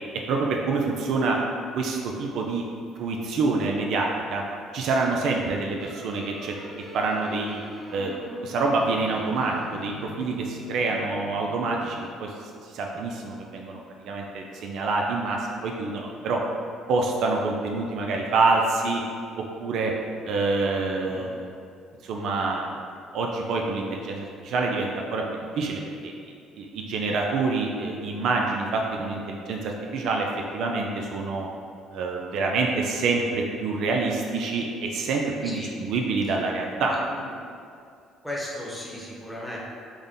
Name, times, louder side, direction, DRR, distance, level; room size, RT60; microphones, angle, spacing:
voice 1, 0.3-1.4 1.7-2.6 3.0-4.4 4.7-6.6 6.9-7.6 7.9-8.1 8.4-12.3 12.6-16.4 16.9-19.0 19.6-19.9 20.3-21.5 22.0-22.8 23.1-26.1 26.6-30.3 30.5-31.5 31.9-36.9, right 3 dB, 70° right, 0 dB, 0.3 m, -26 dB
sound 1, 5.8-11.8, left 1 dB, 20° right, 0.7 m, -44 dB
voice 2, 36.8-37.3 38.2-39.6, left 1 dB, ahead, -5 dB, 1.0 m, -36 dB
3.6 x 2.1 x 3.8 m, 2.4 s
supercardioid pair, 70°, 0 cm